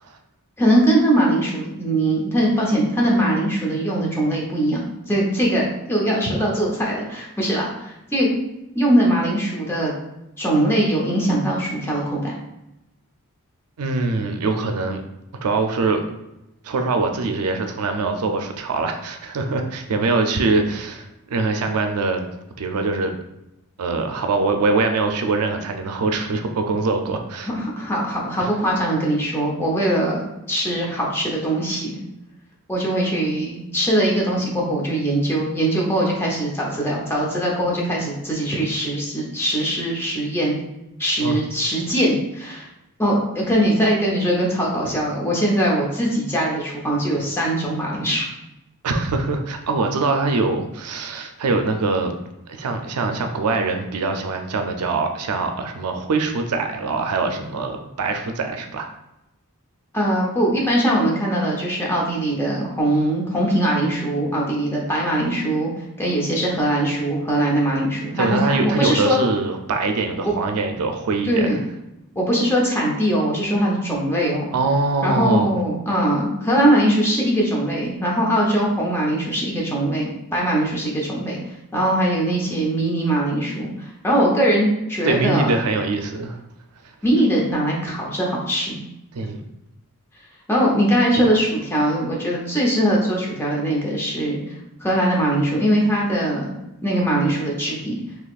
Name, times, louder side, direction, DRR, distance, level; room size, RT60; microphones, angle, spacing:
voice 1, 0.6-8.3 8.7-9.9 10.4-12.3 27.5-32.0 32.7-40.6 41.0-42.7 43.0-48.3 59.9-65.7 66.0-69.2 70.2-70.4 71.3-71.6 72.1-74.5 75.0-81.4 81.7-85.5 87.0-88.8 90.5-94.4 94.8-98.0, right 1 dB, 10° left, -3 dB, 0.8 m, -21 dB
voice 2, 13.8-15.0 15.4-16.0 16.6-22.2 22.6-23.1 23.8-27.5 28.4-28.5 41.2-41.4 48.8-52.1 52.5-58.9 68.2-71.6 74.5-75.5 85.0-86.4 89.1-89.4, right 3 dB, 85° right, 5 dB, 0.5 m, -23 dB
4.0 x 2.9 x 2.4 m, 0.91 s
head